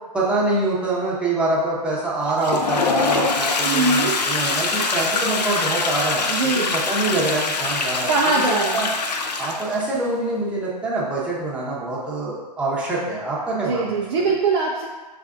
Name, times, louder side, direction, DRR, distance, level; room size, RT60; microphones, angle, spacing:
voice 1, 0.1-6.2 6.5-8.9 9.4-14.0, right 2 dB, 5° right, -6 dB, 0.8 m, -25 dB
Toilet flush, 2.2-9.9, left 4 dB, 75° left, 0.5 m, -24 dB
voice 2, 3.6-4.2 6.3-6.7 8.1-8.8 13.5-14.9, right 3 dB, 35° right, -2 dB, 0.4 m, -22 dB
6.2 x 2.5 x 2.4 m, 1.3 s
figure-of-eight pair, 120°, 21 cm